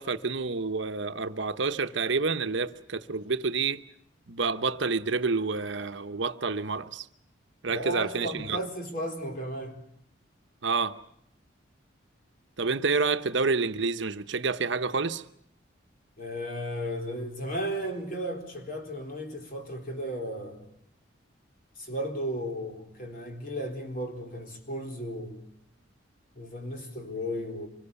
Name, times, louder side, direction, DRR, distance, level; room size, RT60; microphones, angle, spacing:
voice 1, 0.0-3.8 4.3-7.1 7.6-8.6 10.6-11.0 12.6-15.2, right 4 dB, 65° right, 1.0 m, -28 dB
voice 2, 7.7-9.8 16.2-20.6 21.8-25.5 26.4-27.7, equal, 45° left, 4.1 m, -35 dB
25.5 x 24.0 x 7.0 m
head